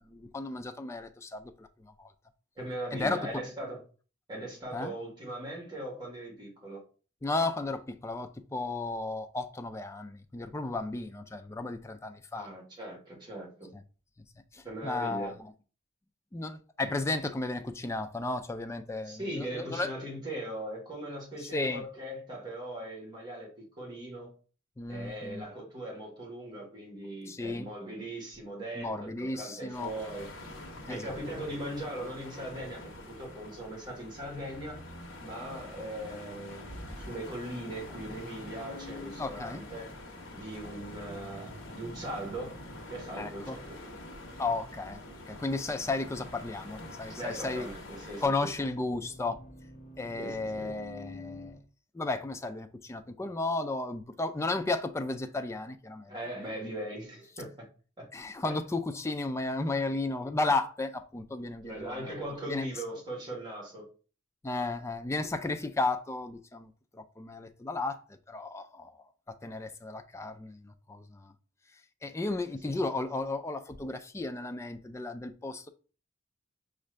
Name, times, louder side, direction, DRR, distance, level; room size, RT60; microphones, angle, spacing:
voice 1, 0.0-1.7 2.0-2.1 2.9-3.4 4.7-5.0 7.2-12.5 14.5-15.3 16.3-19.9 21.4-21.8 24.8-25.4 27.3-27.7 28.8-29.9 30.9-31.1 39.2-39.6 43.2-43.6 44.4-47.7 48.2-49.4 50.0-51.6 51.9-56.1 58.1-62.1 62.5-62.7 64.4-68.0 68.3-69.0 69.3-71.3 72.0-75.7, left 3 dB, 15° left, 0.3 m, -34 dB
voice 2, 2.6-3.8 4.3-6.8 12.3-13.7 14.6-15.4 19.0-24.3 24.9-30.3 30.9-34.8 35.2-39.9 40.3-42.6 42.9-43.8 47.1-48.2 50.2-50.7 56.1-57.6 58.0-58.1 58.4-58.6 61.6-63.8 72.2-72.3, right 1 dB, 20° right, 1.6 m, -40 dB
sound 1, 29.7-48.3, left 1 dB, 75° left, 1.0 m, -46 dB
Accelerating revving vroom, 34.1-51.6, equal, 35° left, 1.1 m, -50 dB
5.4 x 2.5 x 3.2 m
head